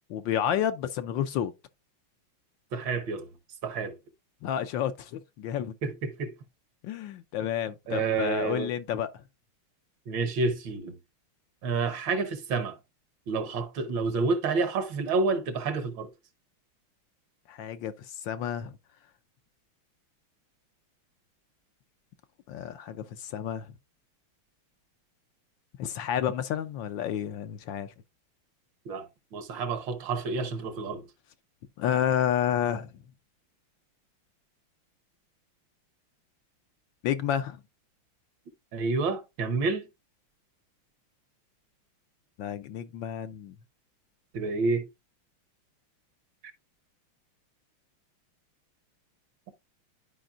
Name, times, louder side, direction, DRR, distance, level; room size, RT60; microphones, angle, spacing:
voice 1, 0.1-1.5 4.4-5.7 6.8-9.1 17.5-18.8 22.5-23.7 25.8-27.9 31.8-32.9 37.0-37.6 42.4-43.5, left 9 dB, 75° left, 1.2 m, -30 dB
voice 2, 2.7-3.3 3.6-4.0 5.8-6.3 7.9-8.7 10.1-11.0 11.6-12.8 13.3-16.1 28.8-31.1 38.7-39.9 44.3-44.9, right 4 dB, 65° right, 1.6 m, -29 dB
11.5 x 5.1 x 2.4 m
omnidirectional pair, 2.3 m